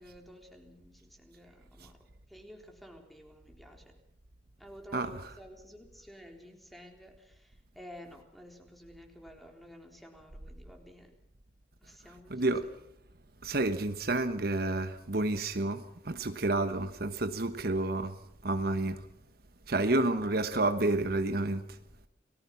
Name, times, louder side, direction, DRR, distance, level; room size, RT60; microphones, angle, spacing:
voice 1, 0.0-2.0 2.3-3.9 4.6-11.1 11.8-12.5 19.9-20.4, equal, ahead, 3.8 m, -52 dB
voice 2, 12.3-12.7 13.4-18.2 18.4-19.1 19.7-21.8, right 2 dB, 55° right, 1.2 m, -30 dB
29.5 x 19.5 x 5.9 m
head